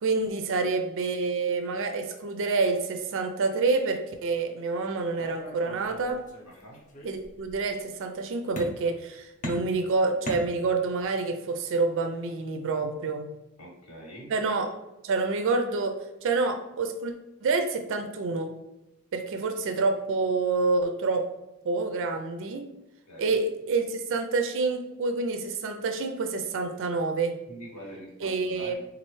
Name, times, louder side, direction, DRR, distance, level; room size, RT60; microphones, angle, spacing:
voice 1, 0.0-6.2 7.0-13.2 14.3-14.7 15.0-17.1 17.4-18.5 19.1-21.3 21.6-22.6 23.2-27.3 28.2-28.7, right 3 dB, 60° right, 6 dB, 0.4 m, -27 dB
sound 1, 5.2-6.5 6.9-7.6 8.6-9.1 9.4-11.0, equal, 35° left, 0.6 m, -39 dB
voice 2, 6.4-6.8 13.6-14.3 23.1-23.4 27.5-28.7, equal, 90° left, -2 dB, 1.4 m, -44 dB
4.2 x 2.4 x 3.1 m, 0.95 s
head